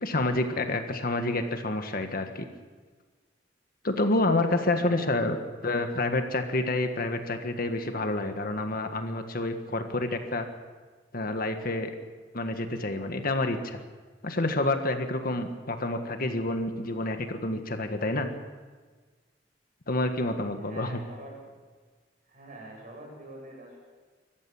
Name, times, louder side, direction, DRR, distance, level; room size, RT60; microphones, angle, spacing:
voice 1, 0.0-2.5 3.8-5.4 5.6-10.5 11.1-11.9 12.3-13.8 14.2-18.3 19.9-21.0, left 2 dB, 50° left, 6 dB, 1.6 m, -28 dB
voice 2, 4.7-6.1 20.6-21.4 22.3-23.8, right 1 dB, 45° right, -1 dB, 7.8 m, -45 dB
25.0 x 14.5 x 7.2 m, 1.4 s
head